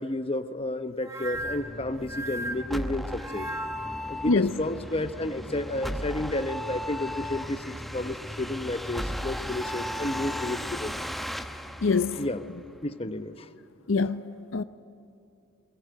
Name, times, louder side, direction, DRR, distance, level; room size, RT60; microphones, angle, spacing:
voice 1, 0.0-3.5 4.1-10.9 12.2-12.4 12.8-13.5, left 1 dB, 30° left, 1.0 m, -31 dB
sound 1, 1.0-4.1, right 1 dB, 15° right, 1.2 m, -37 dB
sound 2, 1.3-12.8, left 1 dB, ahead, 0.9 m, -36 dB
voice 2, 11.8-12.2 13.9-14.6, left 4 dB, 70° left, 0.6 m, -24 dB
23.0 x 20.0 x 9.2 m
head